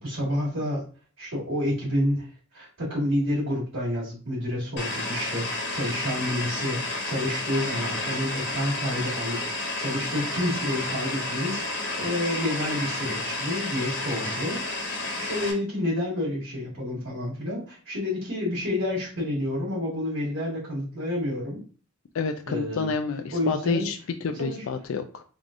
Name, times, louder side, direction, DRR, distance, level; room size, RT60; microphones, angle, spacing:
voice 1, 0.0-0.8 1.2-2.3 2.5-14.6 15.2-21.6 22.5-22.9 23.3-23.9 24.3-24.7, left 1 dB, 80° right, -9 dB, 1.9 m, -29 dB
sound 1, 4.8-15.5, left 2 dB, 55° left, 1.1 m, -31 dB
voice 2, 22.1-25.2, left 5 dB, 85° left, 6 dB, 0.4 m, -29 dB
3.6 x 3.3 x 2.6 m, 0.38 s
head